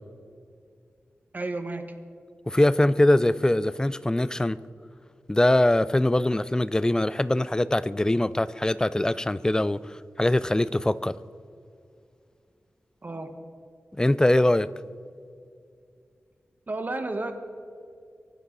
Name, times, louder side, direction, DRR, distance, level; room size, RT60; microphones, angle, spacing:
voice 1, 1.3-1.8 13.0-13.3 16.7-17.3, right 2 dB, 40° right, 7 dB, 1.5 m, -31 dB
voice 2, 2.5-4.6 5.3-11.1 13.9-14.7, left 1 dB, 15° left, 17 dB, 0.4 m, -22 dB
23.5 x 11.5 x 4.0 m, 2.4 s
wide cardioid pair, 85°, 5 cm